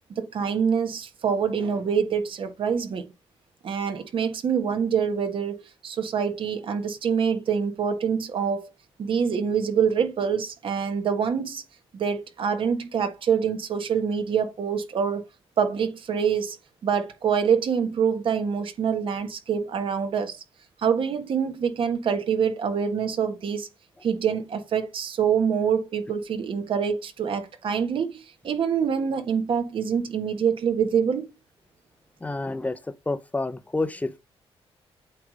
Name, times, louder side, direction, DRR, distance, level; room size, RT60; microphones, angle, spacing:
voice 1, 0.1-3.1 3.6-5.6 5.8-8.7 9.0-11.6 11.9-15.2 15.6-16.6 16.8-20.4 20.8-23.7 24.0-31.2, right 7 dB, 60° right, 1.5 m, -25 dB
voice 2, 32.2-32.8 33.1-34.2, left 2 dB, 15° left, 0.7 m, -28 dB
8.4 x 3.3 x 5.0 m
cardioid pair, 100°, 10 cm